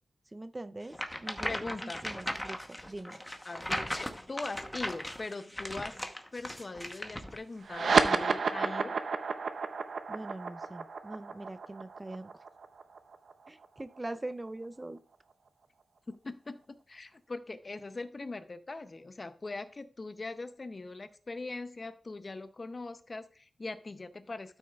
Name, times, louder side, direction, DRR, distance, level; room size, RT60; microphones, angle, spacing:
voice 1, 0.3-1.5 1.8-3.2 10.1-12.3 13.5-15.0, right 2 dB, 20° right, 12 dB, 0.4 m, -42 dB
sound 1, 0.9-7.4, left 1 dB, 10° left, 0.9 m, -38 dB
voice 2, 1.4-2.0 3.4-3.7 3.9-6.0 6.3-9.0 16.1-24.6, left 3 dB, 35° left, 11 dB, 0.6 m, -41 dB
sound 2, 7.6-14.5, right 4 dB, 75° right, 0.6 m, -31 dB
12.5 x 6.3 x 2.3 m, 0.39 s
wide cardioid pair, 125°, 0 cm